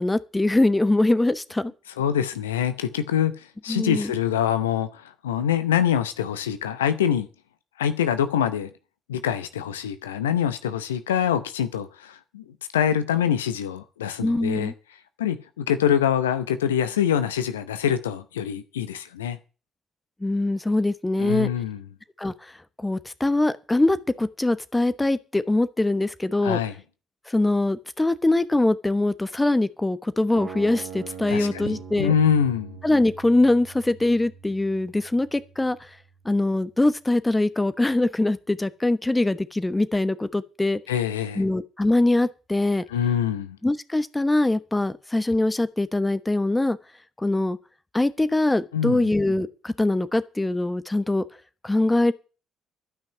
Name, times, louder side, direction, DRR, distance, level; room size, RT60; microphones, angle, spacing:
voice 1, 0.0-1.7 3.7-4.1 14.2-14.7 20.2-21.5 22.2-22.5 22.8-26.6 27.3-32.1 32.8-35.9 36.2-40.8 41.3-42.8 43.6-46.8 47.2-47.6 47.9-51.2 51.6-52.1, left 2 dB, 15° left, 1.1 m, -23 dB
voice 2, 2.0-7.3 7.8-8.7 9.1-12.4 12.7-14.7 15.2-19.4 21.2-21.8 26.4-26.7 31.3-32.8 40.9-41.4 42.9-43.6 48.7-49.1, left 9 dB, 80° left, 0.7 m, -25 dB
sound 1, 30.3-36.4, right 7 dB, 60° right, 2.4 m, -42 dB
12.5 x 5.9 x 9.1 m
figure-of-eight pair, 45°, 0 cm